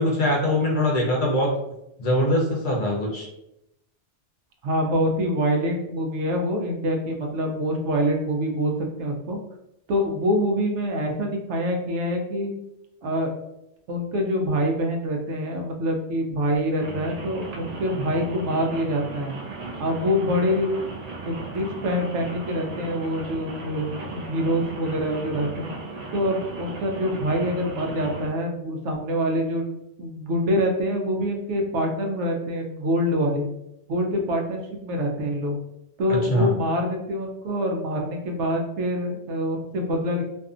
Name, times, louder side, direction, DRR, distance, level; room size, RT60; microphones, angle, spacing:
voice 1, 0.0-1.5 2.0-3.3 36.1-36.5, left 1 dB, 55° left, -2 dB, 0.7 m, -22 dB
voice 2, 4.6-8.7 9.0-9.4 9.9-12.5 13.0-13.3 13.9-19.3 19.8-20.8 21.2-25.7 26.1-29.7 30.0-33.5 33.9-35.6 36.0-40.2, equal, 80° right, 2 dB, 0.9 m, -25 dB
Rain, 16.8-28.3, right 3 dB, 55° right, 0.4 m, -36 dB
2.5 x 2.4 x 2.3 m, 0.85 s
omnidirectional pair, 1.2 m